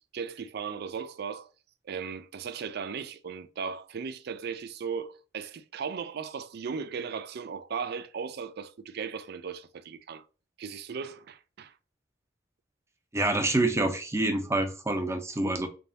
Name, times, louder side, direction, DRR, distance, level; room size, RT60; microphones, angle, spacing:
voice 1, 0.1-1.5 1.8-10.2 10.6-11.7, right 6 dB, 60° right, 0.4 m, -37 dB
voice 2, 13.1-15.7, right 2 dB, 15° right, 0.6 m, -27 dB
3.9 x 3.4 x 2.7 m
head